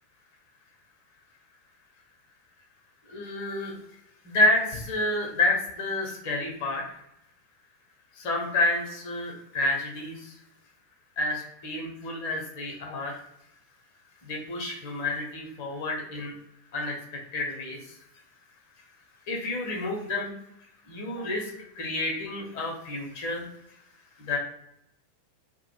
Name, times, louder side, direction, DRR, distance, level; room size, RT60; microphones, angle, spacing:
voice 1, 3.1-3.8 4.2-7.0 8.2-10.3 11.2-13.1 14.2-16.3 16.7-16.9 17.3-18.0 19.3-20.3 20.9-21.5 21.8-23.5 24.2-24.4, left 2 dB, 50° left, 0 dB, 0.6 m, -29 dB
2.1 x 2.1 x 2.8 m, 0.80 s
figure-of-eight pair, 90°, 0 cm